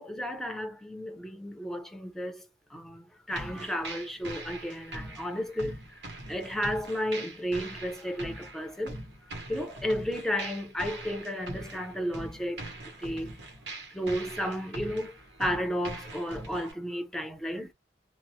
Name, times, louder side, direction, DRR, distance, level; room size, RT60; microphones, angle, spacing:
voice 1, 0.0-5.8 6.3-9.0 9.5-12.7 13.0-13.3 13.9-15.1 15.4-17.7, equal, ahead, 0.5 m, -33 dB
sound 1, 3.3-16.7, right 2 dB, 85° right, 1.0 m, -42 dB
2.9 x 2.0 x 2.7 m
head